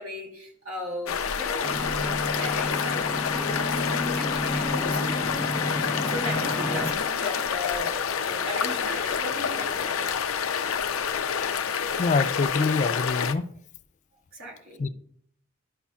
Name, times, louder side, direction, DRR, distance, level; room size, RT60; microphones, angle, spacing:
voice 1, 0.0-5.3 6.0-10.1 14.3-14.9, left 1 dB, 85° right, 0 dB, 2.4 m, -37 dB
sound 1, 1.1-13.3, left 7 dB, 85° left, 0.6 m, -28 dB
sound 2, 1.6-6.9, left 1 dB, 20° left, 0.8 m, -31 dB
voice 2, 12.0-13.5 14.8-14.9, left 3 dB, 35° left, 14 dB, 0.3 m, -25 dB
12.0 x 5.6 x 2.4 m, 0.64 s
head